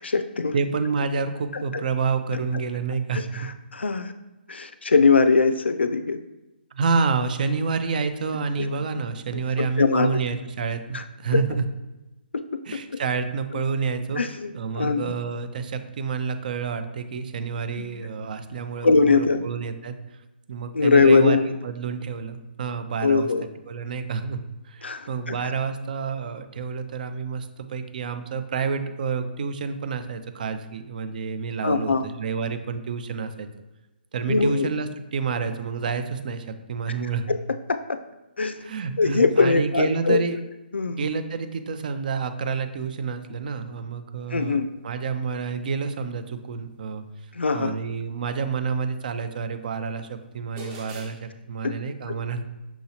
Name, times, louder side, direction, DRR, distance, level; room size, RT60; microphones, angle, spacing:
voice 1, 0.0-0.5 1.5-1.8 2.3-2.4 3.1-4.1 4.5-6.2 8.6-8.7 9.3-10.2 10.9-11.0 11.3-11.4 12.3-13.0 14.2-15.1 17.8-17.9 18.8-19.4 20.7-21.5 23.0-23.5 24.8-25.5 31.6-32.1 34.3-34.7 37.3-38.0 38.4-38.6 39.0-40.2 40.7-41.1 44.3-44.7 47.3-47.8 51.6-51.8 52.1-52.2, left 4 dB, 85° left, 10 dB, 0.4 m, -22 dB
voice 2, 0.5-3.5 6.7-11.7 12.7-20.2 20.5-21.4 21.6-23.3 23.7-24.4 24.6-33.5 34.1-37.3 38.6-40.4 40.9-47.0 47.5-52.4, right 5 dB, 50° right, 9 dB, 0.5 m, -29 dB
sound 1, 49.6-49.7 50.6-51.1, equal, 25° right, 0.8 m, -39 dB
5.8 x 2.8 x 2.7 m, 1.0 s
figure-of-eight pair, 140°, 6 cm